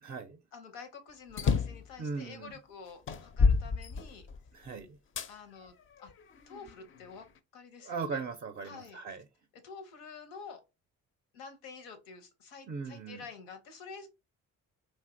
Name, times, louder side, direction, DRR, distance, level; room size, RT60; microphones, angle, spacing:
voice 1, 0.0-0.4 2.0-2.5 4.5-5.0 7.8-9.2 12.7-13.2, right 4 dB, 25° right, 0.4 m, -38 dB
voice 2, 0.5-4.3 5.3-5.7 6.0-6.1 6.5-7.3 7.5-8.2 8.6-9.0 9.6-10.6 11.3-14.1, left 5 dB, 85° left, 0.7 m, -48 dB
sound 1, 1.3-1.9 2.5-2.6 3.1-4.5 5.2-5.3 6.0-7.1, left 5 dB, 35° left, 0.4 m, -28 dB
3.1 x 2.6 x 2.5 m
hypercardioid pair, 50°, 38 cm